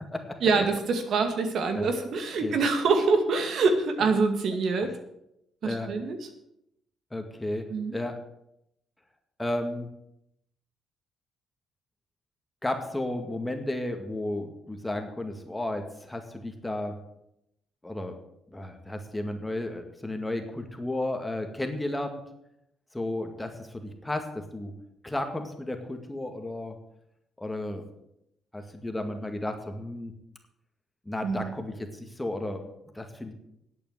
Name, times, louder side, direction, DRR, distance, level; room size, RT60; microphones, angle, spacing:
voice 1, 0.4-5.0 5.6-6.3 7.7-8.0 31.2-31.5, right 4 dB, 65° right, 6 dB, 2.1 m, -25 dB
voice 2, 7.1-7.6 7.9-8.2 9.4-9.9 12.6-16.9 17.8-18.1 18.5-22.2 22.9-24.3 24.5-24.7 25.0-26.8 27.4-27.8 28.5-30.1 31.1-32.6 32.9-33.3, left 1 dB, 10° left, 5 dB, 2.1 m, -33 dB
10.5 x 8.5 x 8.0 m, 0.80 s
cardioid pair, 90°, 0 cm